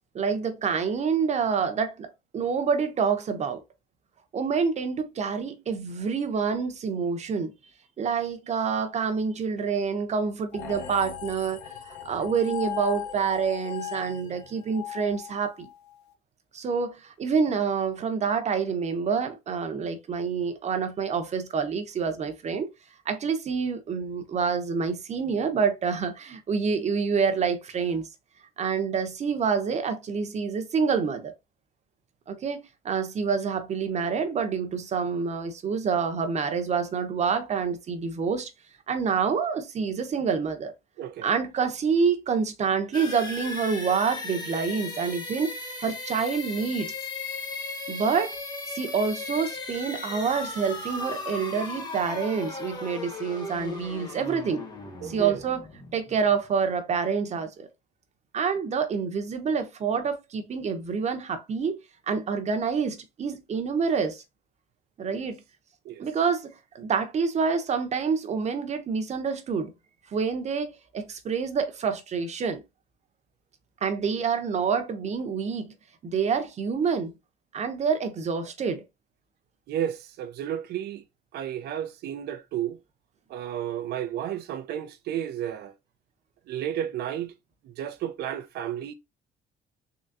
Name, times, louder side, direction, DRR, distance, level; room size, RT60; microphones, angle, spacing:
voice 1, 0.1-2.1 2.3-3.6 4.3-7.5 8.0-11.6 11.9-15.7 16.5-22.7 23.1-28.1 28.6-31.3 32.3-38.5 38.9-40.7 41.2-46.9 47.9-48.4 48.7-54.6 55.0-55.7 55.9-57.7 58.3-61.8 62.1-64.2 65.0-65.4 66.0-69.7 70.1-72.6 73.8-75.7 76.0-77.1 77.5-78.8, right 6 dB, 40° right, 0.9 m, -27 dB
sound 1, 10.5-16.0, left 10 dB, 90° left, 0.8 m, -38 dB
voice 2, 41.0-41.3 55.0-55.4 65.1-65.3 65.8-66.0 79.7-81.0 81.3-82.8 83.3-85.7 86.5-87.3 87.6-88.9, right 10 dB, 70° right, 0.7 m, -32 dB
sound 2, 42.9-56.6, left 3 dB, 25° left, 1.1 m, -37 dB
3.9 x 3.1 x 2.6 m
cardioid pair, 110°, 17 cm